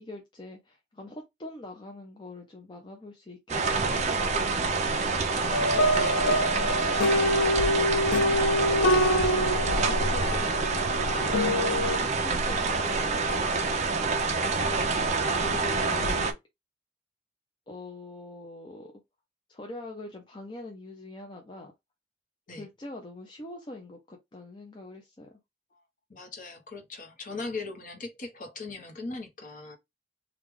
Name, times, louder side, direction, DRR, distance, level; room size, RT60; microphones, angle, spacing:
voice 1, 0.0-4.9 5.5-8.2 9.1-11.4 11.9-14.0 15.3-16.3 17.7-18.9 19.5-21.7 22.5-25.3, left 2 dB, 25° left, 0.6 m, -44 dB
sound 1, 3.5-16.3, right 3 dB, 35° right, 0.5 m, -27 dB
sound 2, 5.5-12.0, left 1 dB, 80° left, 0.5 m, -26 dB
voice 2, 5.9-6.4 8.9-9.1 22.5-22.7 26.1-29.8, left 3 dB, 45° left, 1.0 m, -39 dB
3.2 x 2.4 x 3.6 m
head